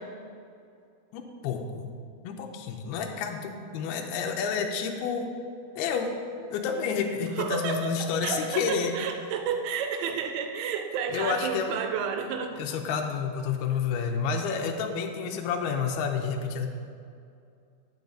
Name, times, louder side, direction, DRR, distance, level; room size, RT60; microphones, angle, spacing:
voice 1, 1.1-1.9 2.2-5.3 5.8-6.2 6.5-8.9 11.1-11.8 12.6-16.7, left 6 dB, 90° left, 3 dB, 2.3 m, -30 dB
voice 2, 7.4-12.8, right 6 dB, 85° right, 5 dB, 2.9 m, -31 dB
9.3 x 4.0 x 7.3 m, 2.4 s
omnidirectional pair, 5.3 m